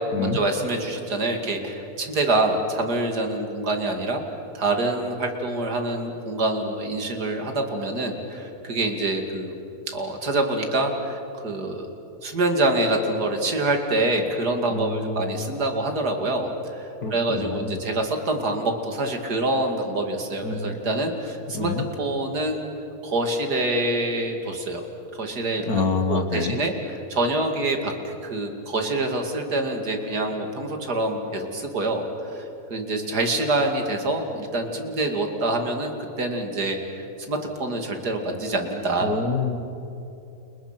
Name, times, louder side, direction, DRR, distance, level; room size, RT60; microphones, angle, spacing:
voice 1, 0.2-4.2 4.5-9.5 9.9-11.9 12.2-21.7 22.0-22.7 23.0-24.8 25.1-25.7 26.1-39.2, right 2 dB, 75° right, 4 dB, 3.0 m, -26 dB
voice 2, 14.7-15.2 17.0-17.8 20.4-20.8 21.5-21.9 25.7-26.6 39.0-39.6, left 4 dB, 65° left, 7 dB, 2.1 m, -27 dB
30.0 x 29.0 x 6.0 m, 2.9 s
omnidirectional pair, 1.7 m